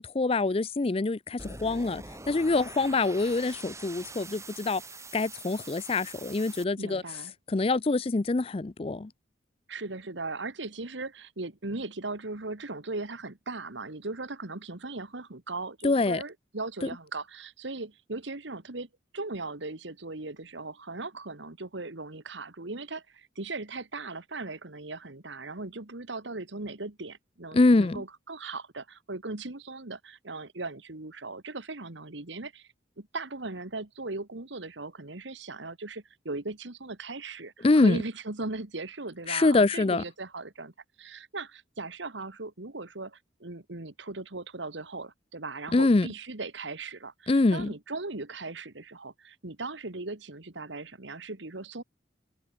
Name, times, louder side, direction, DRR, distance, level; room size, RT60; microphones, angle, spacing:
voice 1, 0.0-4.8 5.1-7.0 7.5-9.1 15.8-16.2 27.5-28.0 37.6-38.0 39.3-40.0 45.7-46.1 47.3-47.7, left 3 dB, 30° left, 0.4 m, -25 dB
sound 1, 1.4-6.6, right 3 dB, 15° right, 7.5 m, -44 dB
voice 2, 6.8-7.3 9.7-32.7 33.0-40.7 41.0-51.8, right 3 dB, 75° right, 1.8 m, -38 dB
head